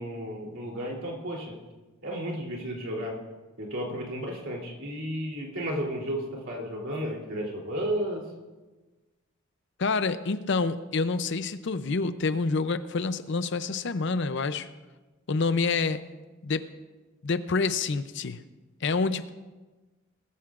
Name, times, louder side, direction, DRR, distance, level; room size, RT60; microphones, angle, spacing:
voice 1, 0.0-1.5 2.0-3.2 3.6-8.2, equal, 65° right, -2 dB, 3.2 m, -33 dB
voice 2, 9.8-14.7 15.3-16.0 16.4-16.6 17.2-18.4 18.8-19.3, left 4 dB, 55° left, 12 dB, 0.5 m, -27 dB
20.0 x 14.0 x 2.5 m, 1.2 s
head